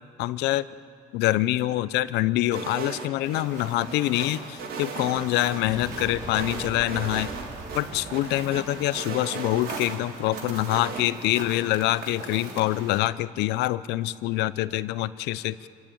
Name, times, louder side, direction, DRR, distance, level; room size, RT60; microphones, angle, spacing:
voice 1, 0.2-0.7 1.1-7.3 7.7-15.7, left 16 dB, 85° left, 16 dB, 0.6 m, -25 dB
sound 1, 2.5-3.4 3.8-5.6 6.0-7.4 7.7-7.8 8.1-10.0 10.3-11.1, right 5 dB, 60° right, 2.6 m, -36 dB
sound 2, 3.2-13.0, right 4 dB, 75° right, 3.1 m, -41 dB
sound 3, 5.6-9.6, right 1 dB, 25° right, 3.7 m, -41 dB
27.0 x 15.0 x 8.7 m, 2.3 s
cardioid pair, 110°, 17 cm